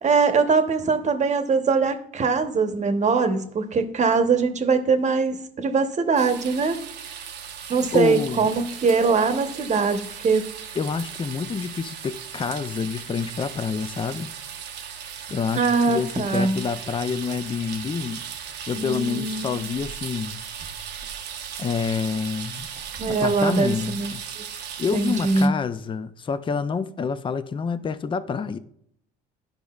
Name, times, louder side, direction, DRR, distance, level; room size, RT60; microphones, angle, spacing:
voice 1, 0.0-6.8 7.7-10.4 15.5-16.6 18.8-19.7 23.0-24.4 24.9-25.6, right 4 dB, 35° right, 1.0 m, -22 dB
sound 1, 6.2-25.5, right 8 dB, 60° right, 0.7 m, -37 dB
voice 2, 7.9-8.5 10.8-14.3 15.3-18.2 18.7-20.4 21.6-22.7 23.2-24.2 24.8-28.6, left 5 dB, 25° left, 0.5 m, -27 dB
11.5 x 5.1 x 2.4 m
supercardioid pair, 80°, 20 cm